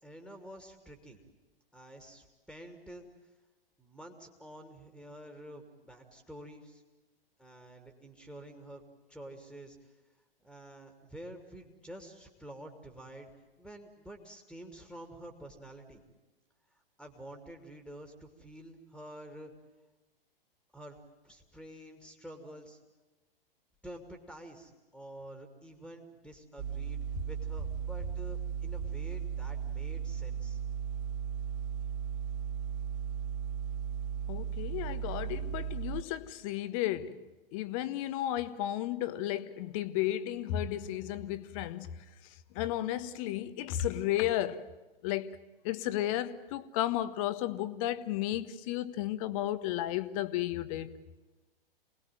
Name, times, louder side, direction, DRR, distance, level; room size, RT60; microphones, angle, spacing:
voice 1, 0.0-1.2 1.7-3.1 3.8-6.8 7.4-8.8 9.1-9.9 10.4-13.3 13.6-16.0 17.0-19.5 20.7-21.0 21.2-22.8 23.8-27.0 27.3-30.6, right 1 dB, ahead, 2.6 m, -49 dB
sound 1, 26.6-36.0, right 8 dB, 25° right, 1.8 m, -36 dB
voice 2, 34.3-37.2 37.5-41.9 42.5-44.6 45.0-45.3 45.6-50.9, left 13 dB, 35° left, 1.4 m, -33 dB
28.0 x 20.0 x 9.1 m
figure-of-eight pair, 110°, 29 cm